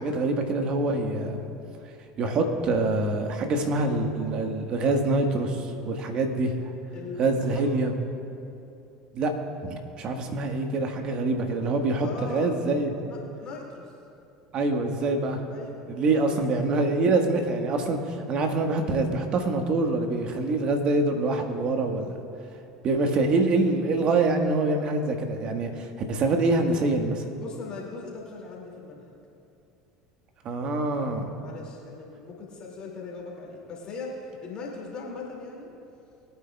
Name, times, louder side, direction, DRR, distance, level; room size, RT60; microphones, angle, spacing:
voice 1, 0.0-1.5 2.2-6.7 7.2-7.9 9.1-9.3 9.6-12.9 14.5-15.4 15.9-22.1 22.8-27.2 30.4-31.2, right 2 dB, 50° right, 4 dB, 1.5 m, -25 dB
voice 2, 6.9-7.6 12.0-12.6 13.0-14.0 15.5-15.7 16.1-16.7 27.4-29.1 31.3-35.7, left 4 dB, 45° left, -2 dB, 2.4 m, -39 dB
22.0 x 9.2 x 2.4 m, 2.8 s
hypercardioid pair, 75°, 2 cm